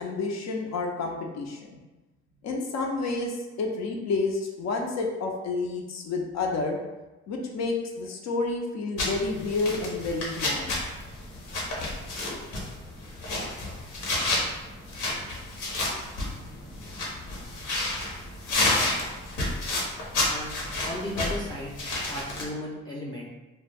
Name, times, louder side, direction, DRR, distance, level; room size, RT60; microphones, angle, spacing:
voice 1, 0.0-1.8 2.4-6.8 7.3-10.8, left 3 dB, 65° left, 1 dB, 0.5 m, -30 dB
sound 1, 9.0-22.4, left 2 dB, 80° left, 0.9 m, -30 dB
voice 2, 20.8-21.7 22.1-23.3, left 1 dB, 15° left, -5 dB, 0.4 m, -35 dB
2.2 x 2.1 x 3.3 m, 1.1 s
cardioid pair, 90°, 30 cm